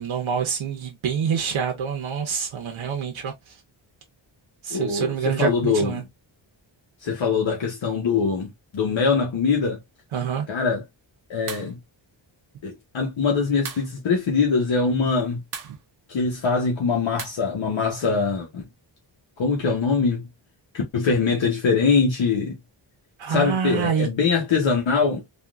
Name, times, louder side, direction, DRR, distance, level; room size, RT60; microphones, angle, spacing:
voice 1, 0.0-3.5 4.6-6.0 10.1-10.5 23.2-24.1, right 7 dB, 90° right, 0.8 m, -26 dB
voice 2, 4.7-5.9 7.0-9.8 10.5-10.8 11.3-11.8 12.6-15.4 16.1-18.6 19.4-20.2 20.7-22.6 23.3-25.2, left 5 dB, 75° left, 1.0 m, -23 dB
sound 1, 11.5-11.7 13.6-13.9 15.5-15.8 17.2-17.3, right 6 dB, 45° right, 0.5 m, -35 dB
3.5 x 2.4 x 2.3 m
wide cardioid pair, 160°, 46 cm